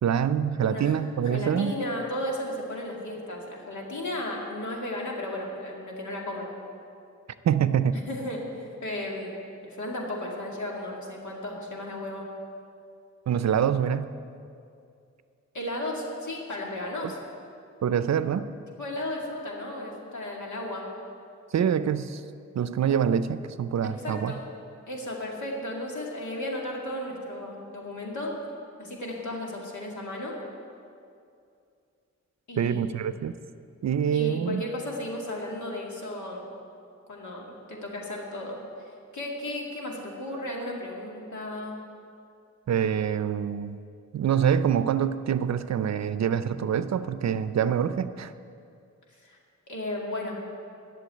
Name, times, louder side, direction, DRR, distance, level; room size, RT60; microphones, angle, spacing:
voice 1, 0.0-1.8 7.4-8.0 13.3-14.1 17.0-17.1 17.8-18.5 21.5-22.2 22.5-24.3 32.6-33.3 33.8-34.6 42.7-43.8 44.1-48.3, right 8 dB, 65° right, 13 dB, 0.5 m, -25 dB
voice 2, 0.6-0.9 1.3-6.5 7.9-9.4 9.6-12.3 15.5-17.2 18.8-20.8 23.8-24.4 24.9-28.3 28.8-30.3 32.5-32.9 34.1-36.5 37.1-38.6 39.1-41.8 49.2-49.4 49.7-50.4, left 1 dB, 80° left, -2 dB, 2.3 m, -34 dB
11.5 x 6.9 x 9.1 m, 2.5 s
wide cardioid pair, 105°, 29 cm